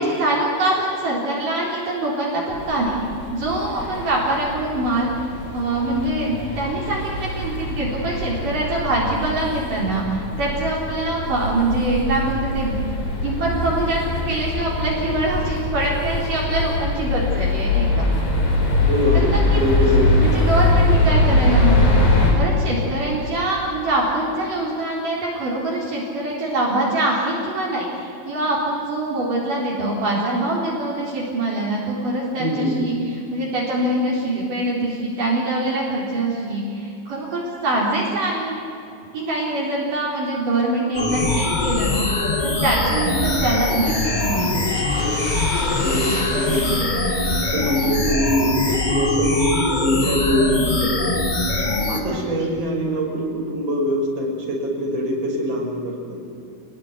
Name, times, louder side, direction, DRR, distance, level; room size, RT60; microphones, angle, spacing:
voice 1, 0.0-3.0 3.3-5.1 5.5-12.7 13.2-18.1 19.1-19.6 20.2-22.0 22.3-32.9 33.3-38.6 39.1-42.1 42.4-44.7 52.1-52.2, right 2 dB, 55° right, -4 dB, 5.5 m, -24 dB
sound 1, 2.5-22.3, left 2 dB, 60° left, 6.6 m, -22 dB
voice 2, 18.8-20.3 32.4-32.7 43.0-43.3 45.8-46.8 47.5-51.3 51.9-55.9, equal, 30° right, -1 dB, 6.4 m, -23 dB
sound 2, 40.9-52.0, left 2 dB, 40° left, 0.6 m, -22 dB
sound 3, 43.6-48.9, left 1 dB, 15° left, 2.8 m, -35 dB
28.0 x 20.0 x 9.9 m, 2.7 s
omnidirectional pair, 4.5 m